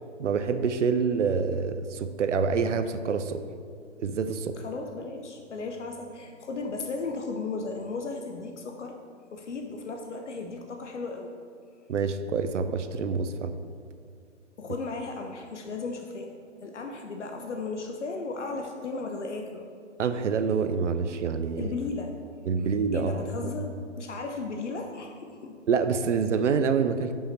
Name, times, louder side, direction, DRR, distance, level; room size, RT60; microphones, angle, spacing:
voice 1, 0.2-3.4 4.0-4.6 11.9-13.5 20.0-21.6 22.5-23.5 25.7-27.1, right 5 dB, 75° right, 10 dB, 0.6 m, -26 dB
voice 2, 4.6-9.0 9.3-11.3 14.6-16.3 16.6-19.7 21.6-22.1 22.6-25.6, left 3 dB, 70° left, 3 dB, 0.8 m, -35 dB
6.3 x 5.5 x 4.4 m, 2.3 s
hypercardioid pair, 150°, 37 cm